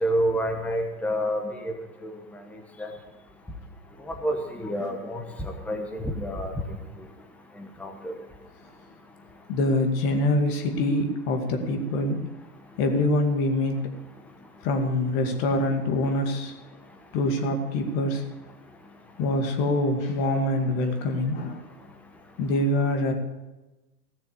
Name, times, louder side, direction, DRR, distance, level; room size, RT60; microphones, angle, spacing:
voice 1, 0.0-1.7 2.0-2.2 2.8-2.9 4.0-5.2 5.7-6.8 7.6-8.1, equal, 5° left, 4 dB, 1.1 m, -28 dB
voice 2, 9.5-12.3 12.8-13.8 14.6-16.5 17.1-18.2 19.2-21.6 22.4-23.1, left 1 dB, 35° left, 4 dB, 2.2 m, -25 dB
16.0 x 6.8 x 8.3 m, 1.1 s
hypercardioid pair, 135°, 48 cm